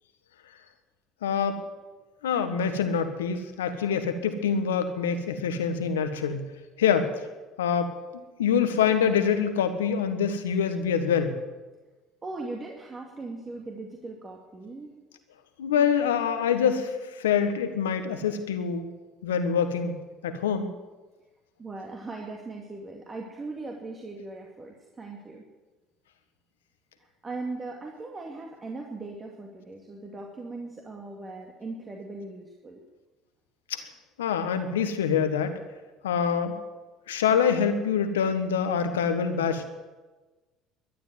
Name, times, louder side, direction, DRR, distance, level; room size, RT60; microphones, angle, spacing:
voice 1, 1.2-1.6 2.2-6.4 6.8-7.1 7.6-7.9 8.4-11.4 15.6-18.9 19.2-20.0 20.2-20.7 33.7-33.8 34.2-35.6 36.0-36.5 37.1-39.6, left 7 dB, 90° left, 8 dB, 1.4 m, -25 dB
voice 2, 12.2-14.9 21.6-25.4 27.0-32.8, right 3 dB, 30° right, 0 dB, 2.4 m, -39 dB
13.0 x 10.5 x 9.4 m, 1.2 s
hypercardioid pair, 70°, 0 cm